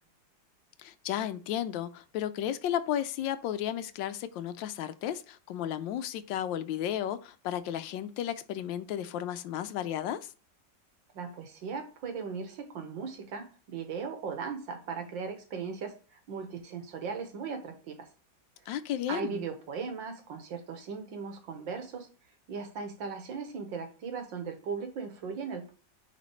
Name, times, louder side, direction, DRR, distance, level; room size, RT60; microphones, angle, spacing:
voice 1, 0.8-10.3 18.7-19.4, left 10 dB, 90° left, 1.3 m, -33 dB
voice 2, 11.1-18.1 19.1-22.1 22.5-25.7, right 5 dB, 85° right, 2.0 m, -38 dB
9.9 x 4.0 x 3.1 m
omnidirectional pair, 2.0 m